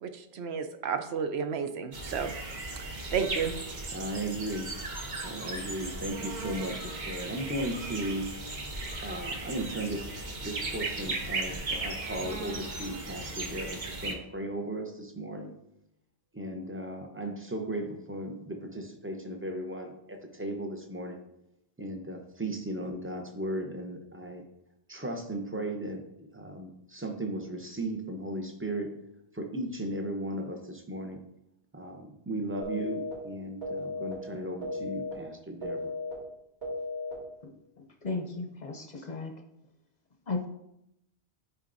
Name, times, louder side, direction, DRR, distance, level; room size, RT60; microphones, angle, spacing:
voice 1, 0.0-2.3 3.1-3.5, right 6 dB, 70° right, 8 dB, 0.8 m, -32 dB
sound 1, 1.9-14.1, right 2 dB, 45° right, 0.9 m, -37 dB
voice 2, 3.9-4.7 5.2-8.3 9.0-15.5 16.3-21.2 21.8-24.4 24.9-28.9 29.3-31.2 31.7-35.9, right 1 dB, 15° right, 3 dB, 0.5 m, -36 dB
sound 2, 32.6-33.1 33.6-34.1 34.6-35.1 35.6-36.1 36.6-37.1, left 2 dB, 90° right, 3.0 m, -35 dB
voice 3, 38.0-39.3 40.3-40.5, left 3 dB, 45° left, 3 dB, 0.7 m, -34 dB
8.7 x 4.5 x 2.6 m, 0.82 s
omnidirectional pair, 1.1 m